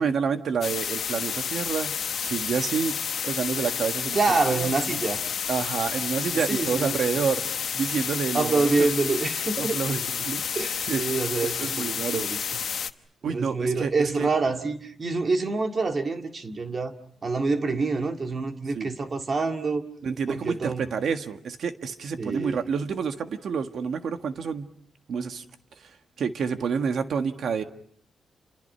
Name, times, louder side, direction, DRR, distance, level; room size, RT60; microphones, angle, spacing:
voice 1, 0.0-1.9 2.2-3.0 3.2-4.2 4.6-4.7 5.5-8.9 9.6-10.4 10.8-11.0 11.6-12.4 13.2-14.3 18.7-18.9 20.0-24.7 25.1-25.4 26.2-27.6, right 6 dB, 70° right, 7 dB, 1.6 m, -28 dB
sound 1, 0.6-12.9, left 7 dB, 70° left, 1.1 m, -30 dB
voice 2, 4.1-5.2 6.5-7.0 8.3-9.8 10.5-12.4 13.3-17.0 17.2-19.9 20.3-20.8 22.2-22.6, right 3 dB, 45° right, 5 dB, 2.0 m, -26 dB
29.0 x 26.5 x 5.6 m, 0.65 s
cardioid pair, 95°, 0 cm